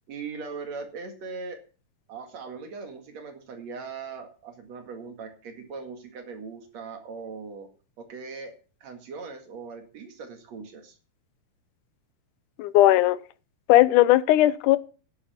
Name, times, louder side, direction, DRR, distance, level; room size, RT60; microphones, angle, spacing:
voice 1, 0.1-1.6 2.1-7.7 8.0-8.5 8.8-10.9, right 4 dB, 60° right, 3.2 m, -39 dB
voice 2, 12.6-13.2 13.7-14.8, left 15 dB, 80° left, 2.2 m, -18 dB
11.0 x 8.4 x 6.9 m
omnidirectional pair, 3.7 m